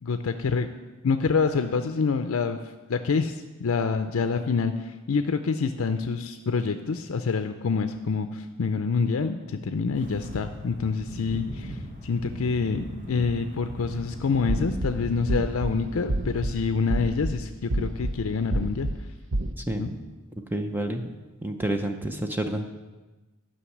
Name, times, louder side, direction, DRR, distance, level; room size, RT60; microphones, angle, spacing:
voice 1, 0.0-0.7 1.0-2.6 2.9-11.7 12.0-18.9 19.8-19.9, left 5 dB, 75° left, 8 dB, 0.5 m, -27 dB
sound 1, 9.9-16.8, equal, 40° right, 1.2 m, -39 dB
sound 2, 14.5-14.9 15.3-15.7 16.1-16.5 16.9-17.3 17.7-18.1 18.5-18.9 19.3-19.5, right 1 dB, 60° right, 0.7 m, -26 dB
voice 2, 20.5-21.1 21.4-22.7, right 1 dB, 10° right, 5 dB, 0.6 m, -29 dB
11.5 x 5.5 x 7.2 m, 1.2 s
head